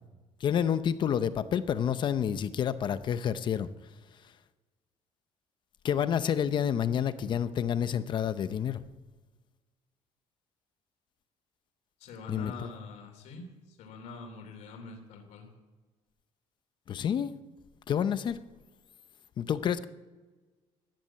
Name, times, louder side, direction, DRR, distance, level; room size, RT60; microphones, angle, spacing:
voice 1, 0.4-3.7 5.8-8.8 12.3-12.5 16.9-17.3 17.9-18.4 19.4-19.9, left 8 dB, 40° left, 13 dB, 0.7 m, -29 dB
voice 2, 12.0-15.5, left 4 dB, 70° left, 3 dB, 3.2 m, -45 dB
14.0 x 10.5 x 9.0 m, 1.3 s
cardioid pair, 160°, 12 cm